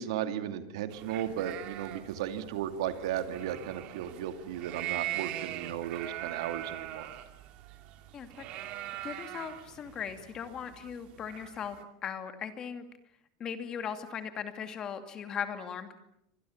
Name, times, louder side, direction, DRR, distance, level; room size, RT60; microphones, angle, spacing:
voice 1, 0.0-7.1, right 10 dB, 80° right, 8 dB, 2.6 m, -35 dB
sound 1, 0.9-11.8, right 14 dB, 40° right, 2.6 m, -42 dB
voice 2, 8.1-8.5 9.0-12.8 13.4-15.9, left 7 dB, 25° left, 8 dB, 2.4 m, -38 dB
29.0 x 25.0 x 7.2 m, 0.77 s
supercardioid pair, 165°, 3 cm